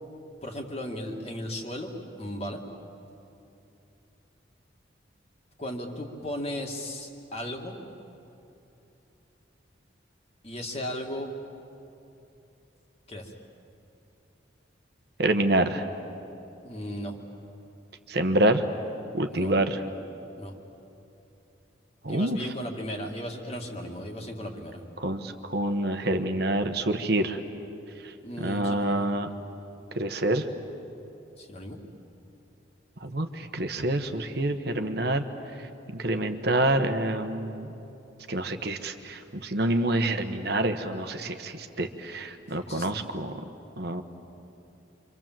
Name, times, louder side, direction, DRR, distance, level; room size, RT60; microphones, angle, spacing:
voice 1, 0.4-2.6 5.6-7.8 10.4-11.3 13.1-13.4 16.6-17.2 19.3-19.6 20.4-20.5 22.1-24.8 28.2-29.0 31.4-31.8 42.7-43.0, equal, 30° left, 2 dB, 2.2 m, -36 dB
voice 2, 15.2-15.8 18.1-18.6 19.1-19.8 22.0-22.4 25.0-27.4 28.4-29.3 30.0-30.4 33.0-35.2 35.9-37.7 38.3-43.4 43.8-44.0, right 1 dB, 55° right, 7 dB, 1.2 m, -27 dB
28.5 x 25.0 x 7.6 m, 2.9 s
head